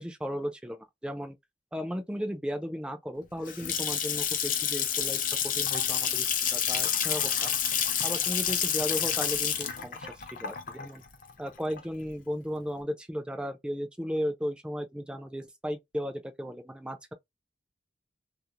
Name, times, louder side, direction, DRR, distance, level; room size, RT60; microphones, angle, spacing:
voice 1, 0.0-1.4 1.7-7.5 8.0-11.0 11.4-17.1, equal, 5° right, 0.4 m, -35 dB
Water tap faucet / Sink (filling or washing) / Splash splatter, 3.2-12.1, left 8 dB, 50° left, 0.5 m, -29 dB
2.5 x 2.0 x 2.8 m
head